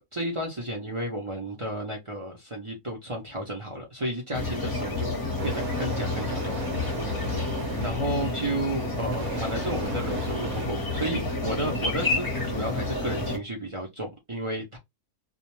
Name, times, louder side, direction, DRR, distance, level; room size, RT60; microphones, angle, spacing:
voice 1, 0.1-5.1 5.4-6.7 7.3-7.4 7.8-14.8, right 1 dB, 35° right, 0.5 m, -32 dB
sound 1, 4.3-13.4, left 2 dB, 20° left, 0.7 m, -29 dB
sound 2, 5.4-8.2 9.1-10.7, right 6 dB, 80° right, 1.2 m, -38 dB
2.4 x 2.2 x 3.0 m
omnidirectional pair, 1.5 m